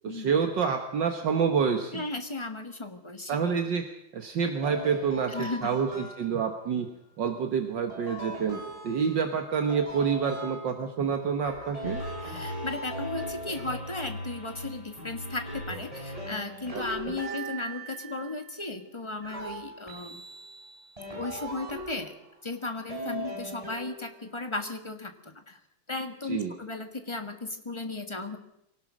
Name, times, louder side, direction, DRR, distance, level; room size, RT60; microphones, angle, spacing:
voice 1, 0.0-2.0 3.3-3.8 4.1-6.9 7.2-8.6 8.8-12.0 16.7-16.8 26.2-26.5, right 6 dB, 70° right, 6 dB, 2.0 m, -28 dB
voice 2, 1.9-3.4 5.3-5.7 12.2-20.2 21.1-22.2 22.4-25.6 25.9-28.4, left 2 dB, 15° left, 7 dB, 1.6 m, -35 dB
sound 1, 4.6-6.6 7.9-11.1 11.5-14.5 15.0-18.5 19.2-22.3 22.9-24.3, right 1 dB, 15° right, 5.1 m, -40 dB
sound 2, 11.8-16.9, left 1 dB, 70° left, 7.0 m, -40 dB
24.0 x 18.0 x 6.3 m, 0.79 s
omnidirectional pair, 2.1 m